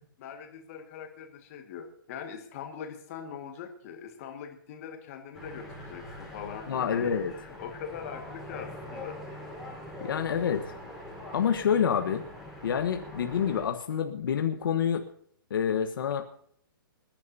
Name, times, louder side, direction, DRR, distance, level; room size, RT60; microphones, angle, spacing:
voice 1, 0.2-9.2, left 7 dB, 40° left, 5 dB, 1.9 m, -42 dB
sound 1, 5.3-13.6, left 1 dB, 5° right, 4.4 m, -43 dB
voice 2, 6.7-7.3 10.0-10.7 11.3-12.2 12.6-15.0 15.5-16.2, left 8 dB, 70° left, 5 dB, 1.3 m, -27 dB
26.0 x 10.5 x 2.7 m, 0.64 s
hypercardioid pair, 160°, 12 cm